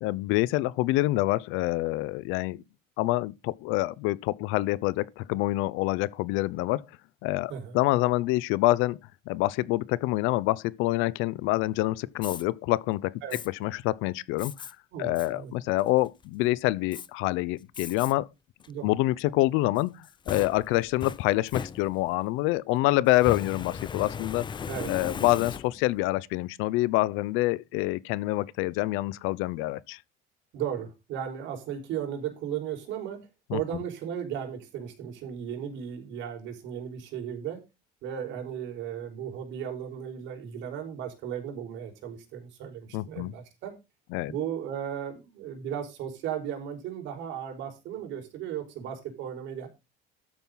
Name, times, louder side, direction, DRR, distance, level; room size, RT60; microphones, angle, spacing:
voice 1, 0.0-2.6 3.0-6.8 7.2-9.0 9.3-13.2 13.6-14.7 15.0-18.3 18.8-19.9 20.3-24.5 24.9-30.0 33.5-33.6 42.9-43.3 44.1-44.3, left 18 dB, 80° left, 0.9 m, -26 dB
Fire, 12.1-12.4 13.3-13.5 14.4-14.7 15.2-15.3 15.8-16.2 16.9-17.1 17.7-18.1 18.6-18.7 19.8-22.2 23.1-26.0, left 6 dB, 20° left, 0.7 m, -37 dB
voice 2, 14.9-15.5 18.7-18.9 24.7-24.9 30.5-33.2 33.5-37.6 38.0-43.7 44.3-49.7, right 9 dB, 65° right, 5.1 m, -35 dB
13.0 x 9.0 x 4.1 m
cardioid pair, 155°, 21 cm